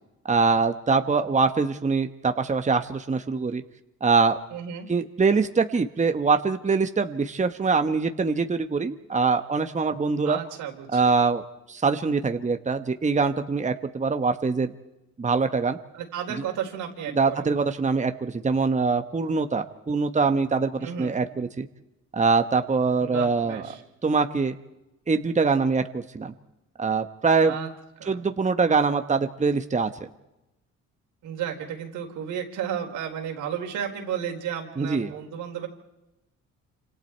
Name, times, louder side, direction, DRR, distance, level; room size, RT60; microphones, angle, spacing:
voice 1, 0.3-3.6 4.0-4.4 4.9-10.4 10.9-11.4 11.7-14.7 15.2-15.8 17.1-21.7 22.1-23.7 24.0-24.5 25.1-26.3 26.8-27.5 28.1-29.9 34.8-35.1, right 4 dB, 25° right, 8 dB, 1.2 m, -23 dB
voice 2, 4.5-4.9 10.2-11.2 15.9-17.5 20.8-21.2 23.0-23.8 27.4-27.7 28.0-28.2 31.2-35.7, right 8 dB, 90° right, 2 dB, 4.2 m, -33 dB
28.0 x 26.5 x 4.5 m, 0.93 s
cardioid pair, 90°, 30 cm